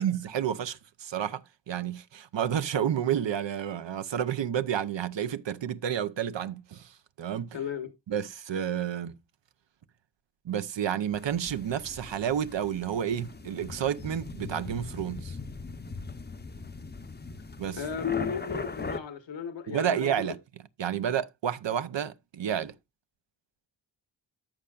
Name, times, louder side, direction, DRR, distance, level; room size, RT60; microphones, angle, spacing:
voice 1, 0.0-7.6 8.1-9.2 10.4-15.4 17.6-17.8 19.7-20.4 20.8-22.7, right 9 dB, 70° right, 0.8 m, -30 dB
voice 2, 7.5-7.9 17.8-20.3, left 7 dB, 70° left, 1.3 m, -34 dB
sound 1, 11.1-19.0, left 3 dB, 20° left, 0.7 m, -40 dB
14.0 x 5.7 x 2.4 m
cardioid pair, 70°, 46 cm